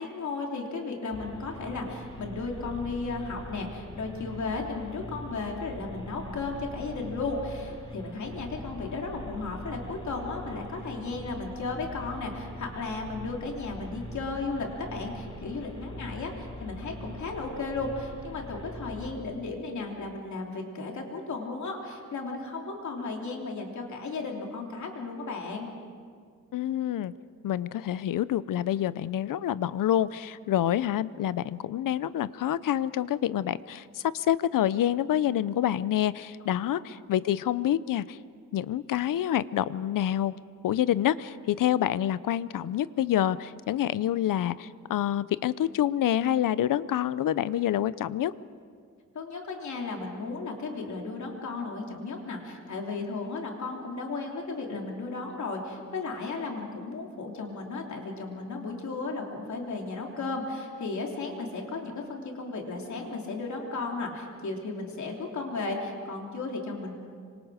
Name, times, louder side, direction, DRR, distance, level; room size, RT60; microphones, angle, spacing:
voice 1, 0.0-25.7 36.7-36.9 49.1-66.9, left 3 dB, 60° left, 1 dB, 3.3 m, -35 dB
sound 1, 1.1-19.1, equal, 15° left, 3.2 m, -42 dB
voice 2, 26.5-27.1 27.4-38.2 38.5-40.4 40.6-48.3, left 11 dB, 80° left, 17 dB, 0.6 m, -27 dB
26.5 x 25.0 x 5.0 m, 2.1 s
wide cardioid pair, 160°, 32 cm